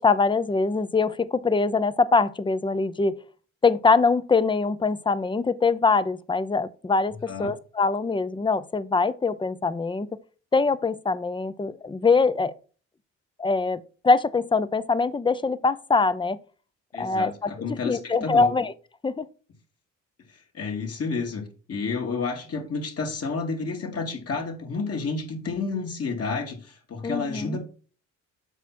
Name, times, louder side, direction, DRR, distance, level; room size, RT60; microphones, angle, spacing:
voice 1, 0.0-3.2 3.6-10.1 10.5-12.5 13.4-16.4 16.9-17.5 17.8-18.7 19.0-19.3 27.0-27.6, left 4 dB, 15° left, 0.7 m, -23 dB
voice 2, 16.9-18.5 20.5-21.4 21.7-27.6, left 4 dB, 50° left, 3.0 m, -30 dB
8.0 x 6.0 x 4.4 m
cardioid pair, 90°, 30 cm